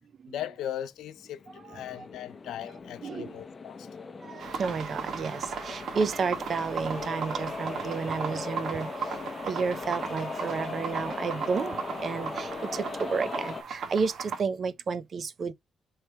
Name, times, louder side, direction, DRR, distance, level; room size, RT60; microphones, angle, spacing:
voice 1, 0.3-3.9, left 11 dB, 80° left, 0.5 m, -38 dB
sound 1, 1.2-13.6, left 4 dB, 30° left, 0.6 m, -39 dB
voice 2, 1.5-2.1 3.0-3.4 4.2-9.2 9.4-15.5, right 5 dB, 50° right, 0.5 m, -32 dB
sound 2, 4.4-14.4, right 6 dB, 65° right, 1.0 m, -37 dB
3.1 x 2.9 x 4.5 m
cardioid pair, 90°, 0 cm